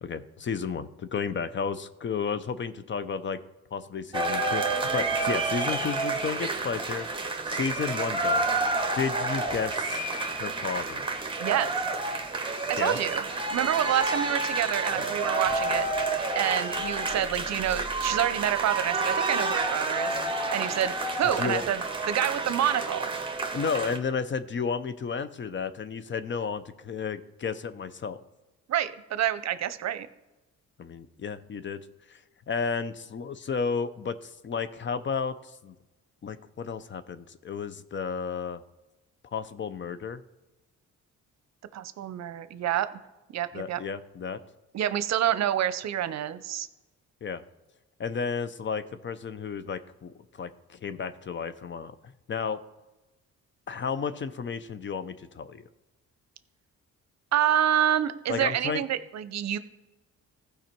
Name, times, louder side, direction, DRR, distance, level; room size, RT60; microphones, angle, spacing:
voice 1, 0.0-3.4 3.7-7.1 7.5-8.4 8.9-10.0 10.4-11.1 12.8-13.0 15.0-15.1 21.3-21.6 23.5-28.2 30.8-32.2 32.5-35.7 36.2-38.6 39.3-40.2 43.5-44.4 47.2-47.4 48.0-51.9 52.3-52.6 53.7-55.6 58.3-58.8, left 5 dB, 40° left, 13 dB, 0.6 m, -32 dB
sound 1, 4.1-24.0, right 3 dB, 15° right, 1.4 m, -29 dB
voice 2, 11.4-11.7 12.7-15.9 16.3-21.8 22.1-23.1 28.7-30.1 41.7-42.9 43.3-43.8 44.7-46.7 57.3-59.6, right 11 dB, 60° right, 13 dB, 0.7 m, -28 dB
15.0 x 5.0 x 4.5 m, 1.1 s
cardioid pair, 90°, 30 cm